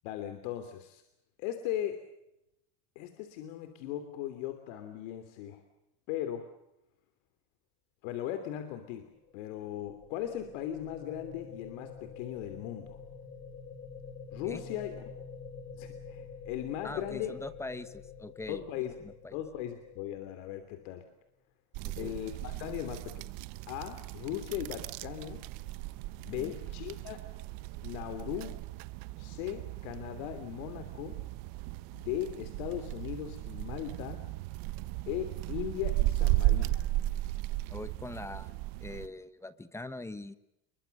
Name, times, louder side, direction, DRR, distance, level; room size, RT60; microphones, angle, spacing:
voice 1, 0.0-1.0 1.4-2.0 2.9-5.6 6.1-6.5 8.0-13.0 14.3-15.0 15.7-17.4 18.5-18.9 19.3-21.0 22.0-23.3 23.7-25.4 26.2-27.2 27.8-28.6 29.2-31.2 31.9-34.2 35.1-36.8, left 11 dB, 90° left, 8 dB, 3.2 m, -38 dB
sound 1, 9.0-21.2, left 6 dB, 35° left, 4.3 m, -48 dB
voice 2, 16.8-19.4 21.8-22.2 26.4-26.6 37.7-38.5 38.8-40.3, left 2 dB, 5° left, 13 dB, 1.1 m, -42 dB
sound 2, 21.7-39.1, right 17 dB, 65° right, 1.1 m, -35 dB
29.0 x 23.0 x 6.7 m, 0.85 s
cardioid pair, 170°, 36 cm